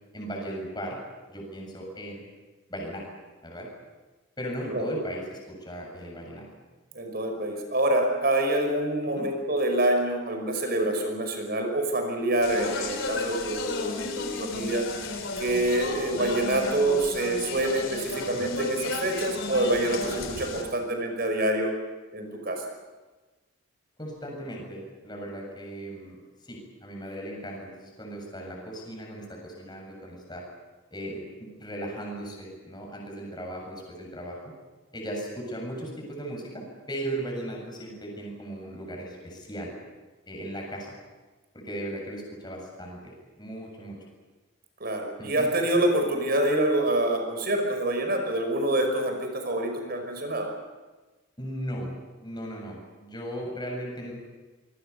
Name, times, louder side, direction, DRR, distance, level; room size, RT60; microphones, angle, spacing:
voice 1, 0.1-1.0 1.3-2.2 2.7-3.0 3.4-3.7 4.4-6.5 9.1-9.3 24.0-26.2 26.4-30.4 30.9-34.4 34.9-39.7 40.3-40.9 41.5-43.1 43.4-44.0 45.2-45.5 51.4-51.9 52.2-54.1, right 1 dB, 20° left, 0 dB, 7.5 m, -37 dB
voice 2, 6.9-14.9 15.4-21.7 22.1-22.6 44.8-50.5, right 1 dB, 45° right, 4 dB, 5.6 m, -26 dB
Speech, 12.4-20.6, left 3 dB, 60° left, 4.0 m, -33 dB
25.5 x 23.0 x 7.0 m, 1.2 s
head